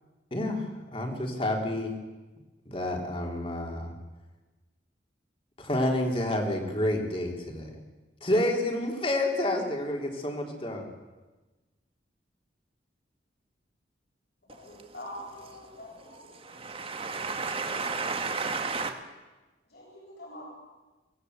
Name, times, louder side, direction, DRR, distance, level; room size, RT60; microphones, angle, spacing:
voice 1, 0.3-1.9 2.7-3.9 5.6-7.8 8.2-10.9, left 1 dB, 30° left, 2 dB, 3.5 m, -29 dB
voice 2, 14.6-16.4 19.7-20.5, left 1 dB, 60° left, -2 dB, 7.3 m, -44 dB
voice 3, 16.4-18.9, right 4 dB, 30° right, 5 dB, 2.1 m, -32 dB
23.0 x 18.5 x 8.1 m, 1.2 s
head